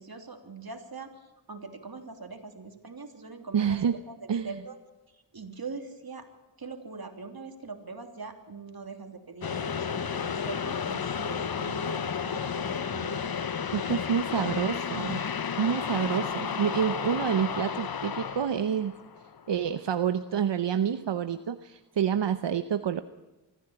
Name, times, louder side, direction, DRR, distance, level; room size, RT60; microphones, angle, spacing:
voice 1, 0.0-4.8 5.1-6.3 6.6-13.2 14.1-14.5, right 4 dB, 55° right, 5 dB, 3.2 m, -42 dB
voice 2, 3.5-4.0 4.3-4.6 13.7-15.2 15.6-18.9 19.5-23.0, right 8 dB, 80° right, 10 dB, 0.8 m, -28 dB
sound 1, 9.4-19.7, left 6 dB, 55° left, 1.0 m, -32 dB
24.5 x 15.0 x 8.9 m, 1.1 s
wide cardioid pair, 60°, 43 cm